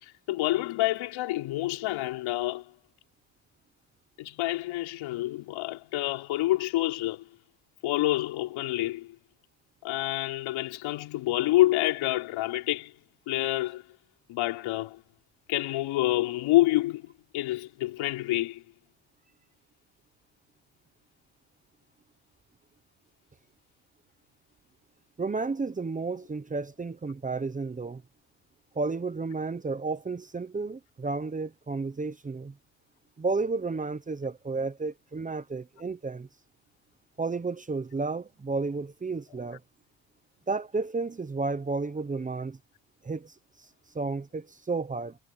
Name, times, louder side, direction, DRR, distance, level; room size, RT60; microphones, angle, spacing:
voice 1, 0.0-2.7 4.2-7.3 7.8-9.2 9.8-12.9 13.3-13.8 14.3-15.0 15.5-18.6, left 16 dB, 80° left, 4.6 m, -28 dB
voice 2, 25.2-28.0 28.7-32.5 33.2-36.3 37.2-39.6 40.5-42.6 43.0-43.3 43.9-45.2, right 3 dB, 15° right, 1.0 m, -32 dB
cardioid pair, 140°, 46 cm